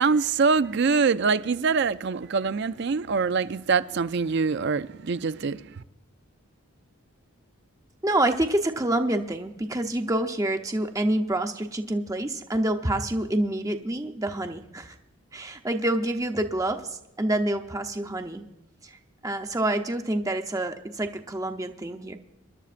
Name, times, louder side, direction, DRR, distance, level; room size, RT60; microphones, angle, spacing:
voice 1, 0.0-5.6, right 5 dB, 50° right, 0.4 m, -24 dB
voice 2, 8.0-15.0 15.3-18.4 18.8-22.2, right 1 dB, 15° right, 0.7 m, -27 dB
25.0 x 12.0 x 2.5 m
head